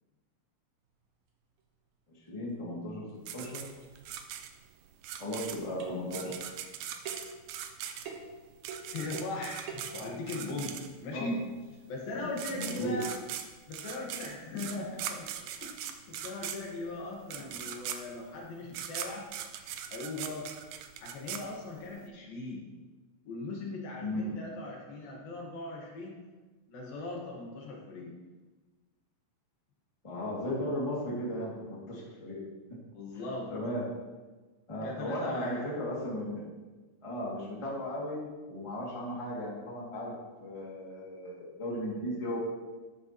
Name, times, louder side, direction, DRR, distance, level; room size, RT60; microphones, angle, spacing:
voice 1, 2.3-3.0 3.3-3.7 5.2-6.4 11.1-11.3 12.2-12.3 12.5-12.9 17.4-17.5 24.0-24.4 30.0-32.4 32.7-32.8 33.5-33.9 34.7-36.4 37.0-40.1 40.4-42.4, left 1 dB, 10° left, -6 dB, 1.8 m, -36 dB
sound 1, 2.4-2.5 3.1-3.2 3.5-4.3 5.3-5.5 5.8-6.1 7.0-7.4 8.1-8.4 8.7-9.4 9.7-10.0, right 5 dB, 65° right, 2.1 m, -44 dB
sound 2, 3.3-11.2 12.0-12.1 12.3-22.0, right 9 dB, 80° right, 1.8 m, -40 dB
voice 2, 8.9-10.7 11.0-11.4 11.9-13.1 13.7-15.3 15.6-15.8 16.1-19.3 19.9-20.5 21.0-22.6 23.2-26.2 26.7-28.1 32.9-33.5 34.8-35.6, left 2 dB, 65° left, -2 dB, 3.4 m, -39 dB
13.0 x 10.0 x 3.1 m, 1.3 s
omnidirectional pair, 4.5 m